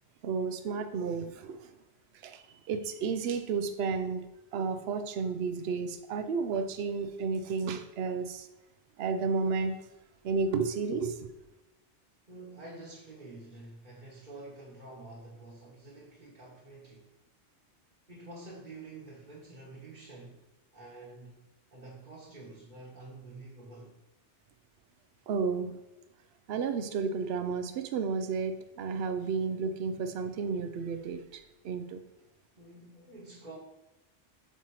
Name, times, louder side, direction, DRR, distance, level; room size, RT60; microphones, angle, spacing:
voice 1, 0.2-1.7 2.2-8.5 9.0-9.8 10.2-11.3 25.3-25.7 26.5-32.0, right 5 dB, 70° right, 0.8 m, -32 dB
voice 2, 12.3-17.1 18.1-20.4 20.7-21.4 21.7-24.0 32.5-33.6, right 2 dB, 45° right, 1.3 m, -48 dB
8.1 x 4.3 x 3.1 m
omnidirectional pair, 1.2 m